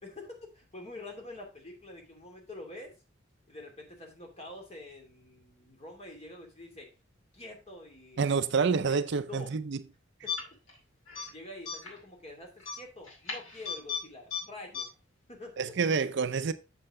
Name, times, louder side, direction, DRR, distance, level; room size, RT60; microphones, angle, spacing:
voice 1, 0.0-2.9 3.5-6.9 7.3-9.0 9.3-9.5 10.2-10.3 11.3-14.9 15.3-15.6, left 2 dB, 35° left, 2.7 m, -46 dB
voice 2, 8.2-9.8 15.6-16.5, right 5 dB, 60° right, 0.5 m, -28 dB
sound 1, 10.3-10.8 11.1-11.3 11.7-12.0 12.6-14.0 14.3-14.4 14.7-14.8, left 6 dB, 85° left, 5.2 m, -35 dB
7.8 x 6.6 x 3.7 m
head